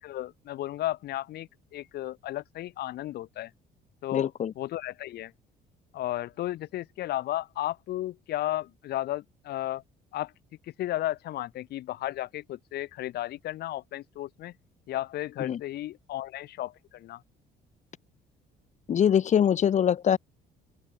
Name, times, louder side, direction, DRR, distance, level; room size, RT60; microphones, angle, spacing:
voice 1, 0.0-3.5 4.0-5.3 5.9-9.8 10.1-10.3 10.8-14.5 14.9-17.2, left 14 dB, 70° left, 3.8 m, -34 dB
voice 2, 4.1-4.5 15.4-15.6 18.9-20.2, left 9 dB, 45° left, 1.2 m, -23 dB
open air
cardioid pair, 110°, 17 cm